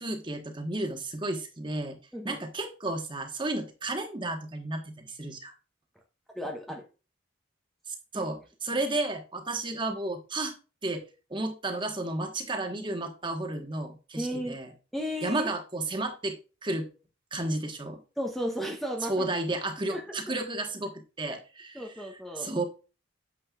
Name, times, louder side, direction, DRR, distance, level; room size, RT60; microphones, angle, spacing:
voice 1, 0.0-2.0 2.2-5.5 7.9-10.5 10.8-11.0 11.3-14.7 15.2-16.9 17.3-18.0 19.1-21.8 22.4-22.6, right 2 dB, 25° right, 5 dB, 1.4 m, -32 dB
voice 2, 6.3-6.8 8.1-8.3 14.2-14.6 14.9-15.5 18.2-19.3 19.9-20.2 21.7-22.5, equal, ahead, 2 dB, 1.0 m, -34 dB
9.2 x 7.6 x 2.5 m, 0.32 s
head